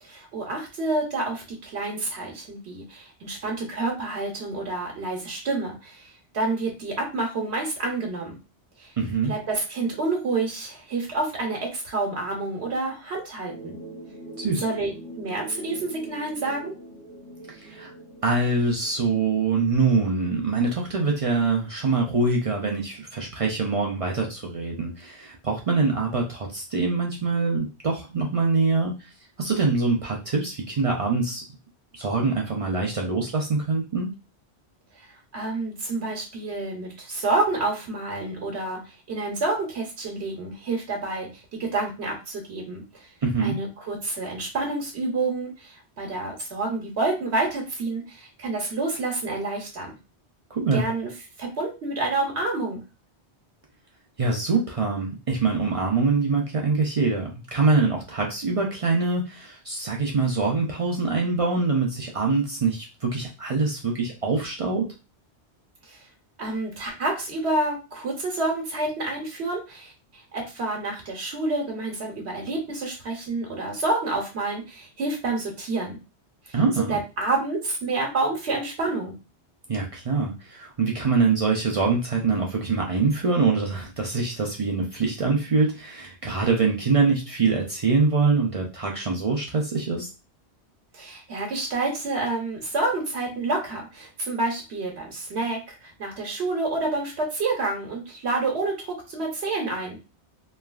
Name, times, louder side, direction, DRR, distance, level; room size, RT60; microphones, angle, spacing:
voice 1, 0.0-8.4 8.8-8.9 9.3-13.7 14.6-14.9 15.2-16.7 35.0-35.1 35.3-43.1 43.4-49.9 50.7-51.1 51.4-52.8 65.9-66.0 66.4-69.9 70.3-76.0 76.5-76.6 76.9-79.1 90.9-100.1, right 2 dB, 75° right, 1 dB, 1.1 m, -28 dB
voice 2, 9.0-9.3 14.4-14.6 17.5-17.9 18.2-29.1 29.4-31.4 31.9-34.1 43.2-43.6 50.5-50.8 54.2-64.9 76.5-77.0 79.7-90.1, right 4 dB, 50° right, -1 dB, 0.4 m, -24 dB
sound 1, 13.5-19.7, right 2 dB, 50° left, 1.2 m, -43 dB
3.1 x 2.3 x 2.3 m, 0.29 s
omnidirectional pair, 1.1 m